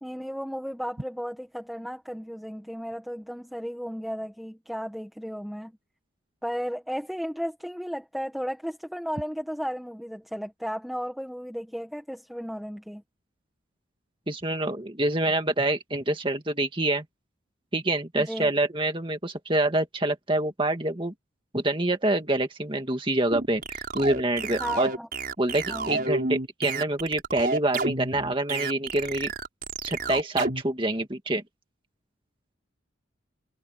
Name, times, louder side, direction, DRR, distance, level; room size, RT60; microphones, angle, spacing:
voice 1, 0.0-5.8 6.4-13.0 18.1-18.5 24.6-25.1 25.7-26.1, equal, ahead, 1.5 m, -34 dB
voice 2, 14.3-17.0 17.7-21.1 21.5-24.9 25.4-29.3 29.8-31.4, right 1 dB, 25° right, 2.0 m, -26 dB
sound 1, 23.3-30.6, right 3 dB, 45° right, 6.1 m, -30 dB
head